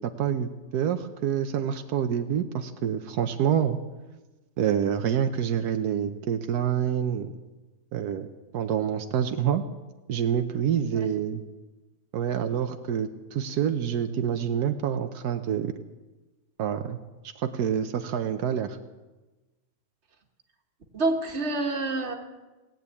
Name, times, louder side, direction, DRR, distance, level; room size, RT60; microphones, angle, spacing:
voice 1, 0.0-3.8 4.6-7.3 7.9-8.3 8.5-9.6 10.1-11.4 12.1-15.7 16.6-17.0 17.4-18.8, right 9 dB, 85° right, 7 dB, 1.3 m, -27 dB
voice 2, 20.9-22.1, right 2 dB, 45° right, 4 dB, 1.8 m, -27 dB
18.5 x 9.1 x 8.3 m, 1.2 s
omnidirectional pair, 1.6 m